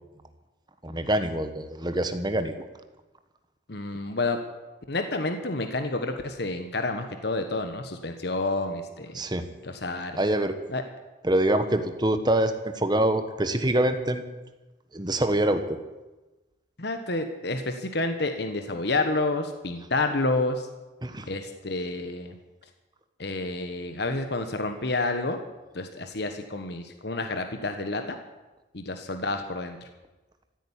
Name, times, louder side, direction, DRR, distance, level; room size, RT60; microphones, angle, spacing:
voice 1, 0.8-2.5 9.1-9.5 10.2-10.6 11.2-14.3 14.9-15.8 21.0-21.3, right 1 dB, 20° right, 9 dB, 1.2 m, -25 dB
voice 2, 3.7-4.4 4.9-9.2 9.6-10.2 10.7-10.8 16.8-20.7 21.3-22.3 23.2-25.4 25.7-28.2 28.7-29.8, left 2 dB, 55° left, 6 dB, 1.2 m, -29 dB
15.5 x 9.0 x 10.0 m, 1.1 s
head